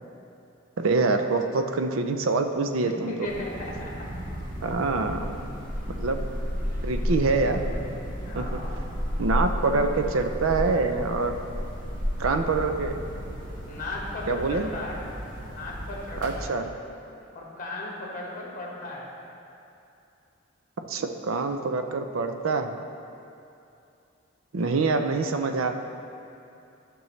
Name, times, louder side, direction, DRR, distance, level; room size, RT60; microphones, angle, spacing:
voice 1, 0.8-3.1 4.6-5.4 5.9-6.2 6.8-7.6 8.3-8.6 9.2-11.4 12.2-13.0 14.3-14.7 16.2-16.7 20.9-22.9 24.5-25.7, right 3 dB, 85° right, 6 dB, 0.5 m, -25 dB
voice 2, 2.8-4.1 5.0-5.2 8.2-8.8 9.8-9.9 13.6-15.0 15.4-16.5 17.3-19.1, left 1 dB, 40° left, -3 dB, 1.5 m, -36 dB
sound 1, 3.2-16.4, equal, 45° right, 1.5 m, -33 dB
12.0 x 6.2 x 3.2 m, 2.7 s
head